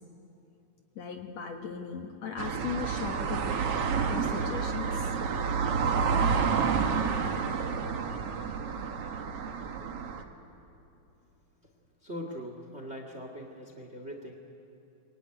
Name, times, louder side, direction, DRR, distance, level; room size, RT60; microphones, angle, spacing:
voice 1, 1.0-3.7 4.1-5.1, left 6 dB, 60° left, 3 dB, 2.3 m, -38 dB
sound 1, 2.4-10.2, right 6 dB, 55° right, 2.0 m, -29 dB
voice 2, 12.0-14.3, equal, 25° right, 3 dB, 1.9 m, -41 dB
25.5 x 23.0 x 9.8 m, 2.8 s
omnidirectional pair, 3.9 m